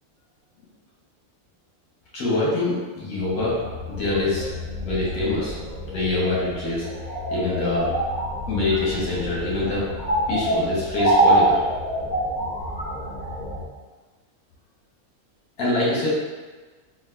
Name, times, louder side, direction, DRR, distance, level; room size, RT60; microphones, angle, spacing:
voice 1, 2.1-4.5 4.8-5.5 5.9-6.9 7.3-7.9 8.5-9.9 10.3-11.6 15.6-16.1, left 2 dB, 85° left, -6 dB, 1.4 m, -25 dB
sound 1, 3.2-13.6, right 1 dB, 35° left, 0.9 m, -26 dB
3.9 x 2.4 x 2.2 m, 1.3 s
omnidirectional pair, 1.6 m